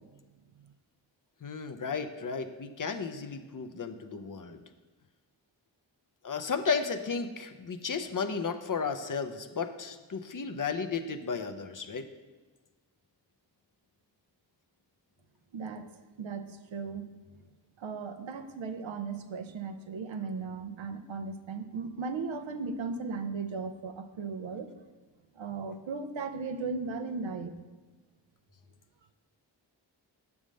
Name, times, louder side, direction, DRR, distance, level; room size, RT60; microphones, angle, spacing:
voice 1, 1.4-4.6 6.2-12.1, left 5 dB, 45° left, 8 dB, 0.6 m, -34 dB
voice 2, 15.5-15.9 16.2-17.1 17.8-24.7 25.3-27.5, right 4 dB, 85° right, 8 dB, 0.6 m, -36 dB
7.3 x 3.6 x 6.3 m, 1.3 s
cardioid pair, 50°, 45 cm